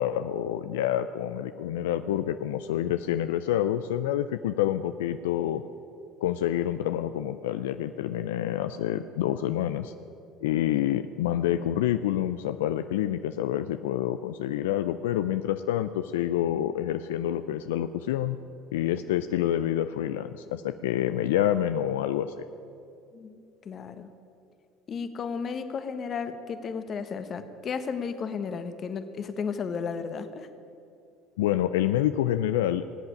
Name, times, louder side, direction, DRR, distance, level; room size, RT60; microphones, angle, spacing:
voice 1, 0.0-5.6 6.2-9.9 10.4-18.4 18.7-22.3 31.4-32.8, left 11 dB, 85° left, 10 dB, 0.4 m, -27 dB
voice 2, 23.1-24.1 24.9-30.5, left 6 dB, 45° left, 9 dB, 1.3 m, -34 dB
19.0 x 8.1 x 8.7 m, 2.5 s
hypercardioid pair, 75°, 0 cm